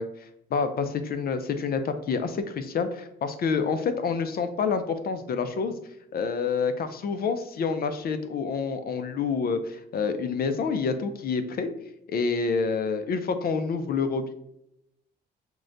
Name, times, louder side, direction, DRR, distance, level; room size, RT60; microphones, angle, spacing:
voice 1, 0.0-5.8 6.1-11.7 12.1-14.3, left 5 dB, 50° left, 9 dB, 0.4 m, -28 dB
6.0 x 2.1 x 2.6 m, 0.82 s
cardioid pair, 90°, 20 cm